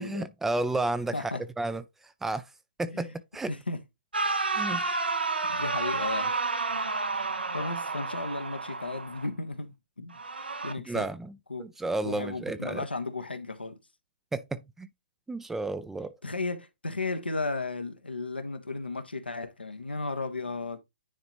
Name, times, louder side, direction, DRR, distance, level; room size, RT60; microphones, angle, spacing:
voice 1, 0.0-2.5 2.8-3.5 4.5-4.8 10.9-11.3 11.6-12.9 14.3-14.9 15.3-16.2, right 2 dB, 5° right, 0.4 m, -32 dB
voice 2, 3.5-3.8 4.7-5.0 5.5-6.3 7.5-10.1 10.6-11.1 11.5-11.7 12.0-13.8 16.2-20.8, left 3 dB, 90° left, 1.2 m, -34 dB
sound 1, 4.1-9.3 10.1-10.7, right 3 dB, 80° right, 1.2 m, -30 dB
9.9 x 3.9 x 3.0 m
figure-of-eight pair, 130°, 5 cm